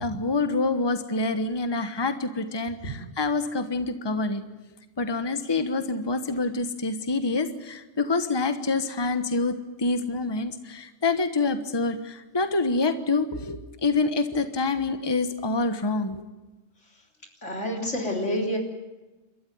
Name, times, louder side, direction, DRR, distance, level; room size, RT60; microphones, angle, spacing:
voice 1, 0.0-4.4 5.0-16.2, left 3 dB, 20° left, 9 dB, 1.2 m, -26 dB
voice 2, 17.4-18.6, equal, 85° left, 2 dB, 4.1 m, -28 dB
29.0 x 13.5 x 9.4 m, 1.1 s
omnidirectional pair, 1.2 m